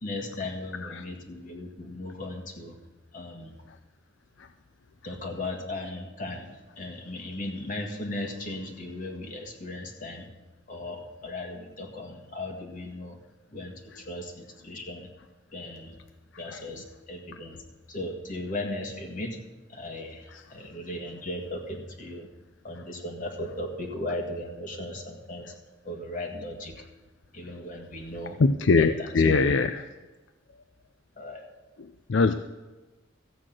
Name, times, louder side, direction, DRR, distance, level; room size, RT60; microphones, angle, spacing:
voice 1, 0.0-2.8 3.1-3.5 5.0-10.3 10.7-13.2 13.5-15.1 15.5-16.0 16.4-19.4 19.7-22.3 22.6-25.5 25.8-26.8 27.3-28.4 28.8-29.4 31.2-31.4, left 1 dB, 45° left, 2 dB, 1.8 m, -37 dB
voice 2, 28.4-29.8 32.1-32.3, left 4 dB, 65° left, 10 dB, 0.5 m, -22 dB
14.0 x 8.8 x 6.0 m, 1.2 s
head